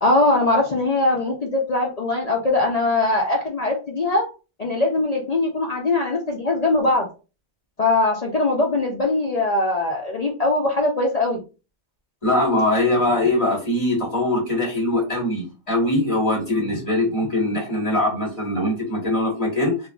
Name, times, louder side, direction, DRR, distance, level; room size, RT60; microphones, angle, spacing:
voice 1, 0.0-4.3 4.6-7.1 7.8-11.4, left 2 dB, 55° left, 0 dB, 0.4 m, -21 dB
voice 2, 12.2-19.9, left 1 dB, 25° left, -1 dB, 1.3 m, -22 dB
3.7 x 2.5 x 2.3 m, 0.32 s
omnidirectional pair, 1.4 m